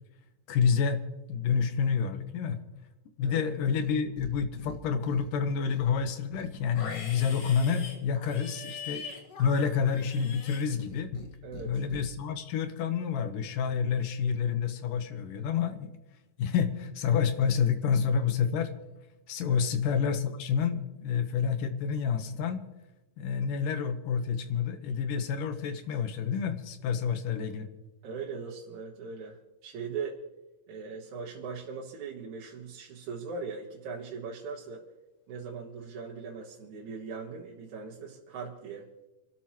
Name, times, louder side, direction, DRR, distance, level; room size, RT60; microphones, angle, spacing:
voice 1, 0.5-1.0 1.3-2.6 3.2-9.0 9.4-11.2 11.6-15.9 16.4-18.7 19.3-22.6 23.2-27.7, left 6 dB, 85° left, 8 dB, 2.7 m, -28 dB
Livestock farm animals working animals, 3.7-4.3 4.6-5.3 5.7-11.3 11.5-12.0, left 4 dB, 55° left, 2.5 m, -43 dB
voice 2, 11.4-11.8 19.5-19.7 28.0-30.2 30.7-34.8 35.3-38.9, right 5 dB, 65° right, -1 dB, 2.7 m, -40 dB
28.0 x 12.5 x 3.0 m, 1.0 s
omnidirectional pair, 3.8 m